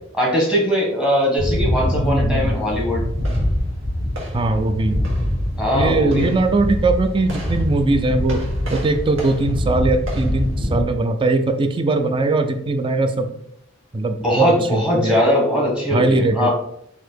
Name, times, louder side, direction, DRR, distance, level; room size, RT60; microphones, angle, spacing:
voice 1, 0.2-3.0 5.6-6.3 14.2-16.5, equal, 5° right, -2 dB, 1.3 m, -20 dB
sound 1, 1.4-10.8, equal, 80° right, 1.4 m, -24 dB
voice 2, 1.9-2.5 4.3-5.0 5.7-8.4 8.7-13.3 13.9-15.2 15.9-16.5, right 2 dB, 25° right, 7 dB, 0.4 m, -20 dB
4.1 x 2.7 x 4.5 m, 0.75 s
head